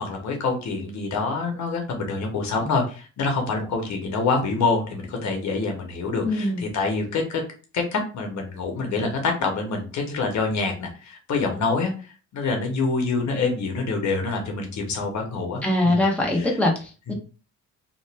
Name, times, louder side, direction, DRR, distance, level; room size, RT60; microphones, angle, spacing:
voice 1, 0.0-7.4 7.7-16.0 16.3-16.5 17.1-17.2, left 4 dB, 70° left, 3 dB, 1.0 m, -26 dB
voice 2, 6.2-6.6 15.6-17.1, left 1 dB, 5° left, -1 dB, 0.8 m, -22 dB
2.9 x 2.1 x 3.3 m, 0.35 s
cardioid pair, 90°, 30 cm